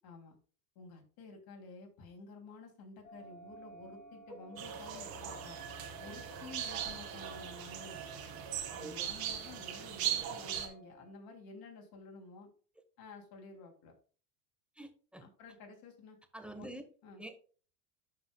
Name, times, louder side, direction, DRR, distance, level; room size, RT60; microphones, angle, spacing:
voice 1, 0.0-0.4 0.7-5.6 6.0-8.3 8.7-12.5 13.0-13.9 15.2-16.2 16.6-16.7 17.0-17.2, left 3 dB, 50° left, 3 dB, 2.8 m, -52 dB
sound 1, 3.0-11.1, right 3 dB, 75° left, 3.0 m, -56 dB
sound 2, 4.6-10.7, right 9 dB, 50° right, 2.2 m, -39 dB
voice 2, 8.7-9.1 14.8-15.2 16.3-16.8 17.2-17.4, right 1 dB, ahead, 7 dB, 1.2 m, -46 dB
11.5 x 5.5 x 2.3 m, 0.41 s
hypercardioid pair, 90°, 46 cm